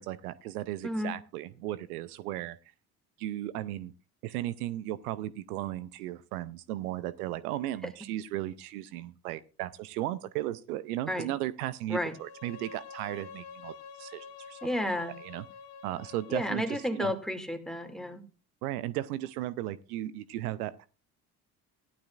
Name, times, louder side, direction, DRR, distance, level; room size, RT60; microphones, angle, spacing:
voice 1, 0.0-2.6 3.2-3.9 4.2-13.7 14.0-14.6 15.1-15.4 15.8-17.1 18.6-20.9, right 14 dB, 80° right, 16 dB, 0.7 m, -35 dB
Bowed string instrument, 12.0-17.2, left 6 dB, 50° left, 1.9 m, -48 dB
voice 2, 14.6-15.1 16.3-18.2, left 1 dB, ahead, 5 dB, 2.4 m, -32 dB
16.0 x 11.5 x 2.4 m, 0.33 s
hypercardioid pair, 55°, 45 cm